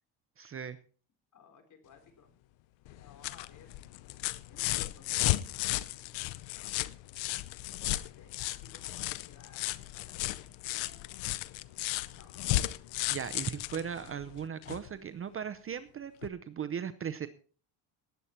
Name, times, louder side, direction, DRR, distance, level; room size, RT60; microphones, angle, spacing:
voice 1, 0.4-0.8 13.1-17.3, right 8 dB, 30° right, 11 dB, 0.7 m, -38 dB
voice 2, 1.3-2.3 2.8-3.7 4.5-6.3 7.8-11.3 12.1-12.5, left 5 dB, 40° left, 6 dB, 3.7 m, -59 dB
sound 1, 2.9-14.9 16.2-16.3, left 17 dB, 75° left, 0.7 m, -34 dB
18.5 x 8.2 x 4.4 m, 0.41 s
cardioid pair, 125°, 46 cm